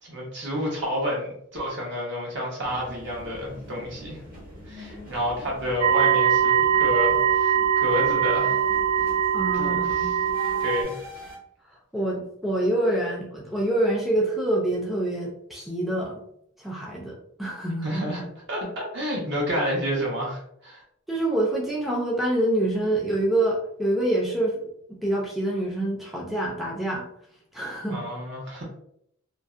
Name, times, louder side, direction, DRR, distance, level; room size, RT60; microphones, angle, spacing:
voice 1, 0.0-4.2 4.7-8.6 9.5-9.9 10.6-11.0 17.8-18.2 18.5-20.8 27.9-28.6, equal, 60° right, -3 dB, 0.9 m, -30 dB
sound 1, 2.6-11.4, left 1 dB, 45° right, 1.3 m, -44 dB
sound 2, 5.8-10.8, right 9 dB, 85° right, 0.4 m, -22 dB
voice 2, 9.3-10.1 11.9-16.2 16.6-18.0 21.1-24.6 25.0-27.0 27.5-28.0, right 1 dB, ahead, -4 dB, 0.3 m, -26 dB
2.5 x 2.0 x 2.4 m, 0.70 s
head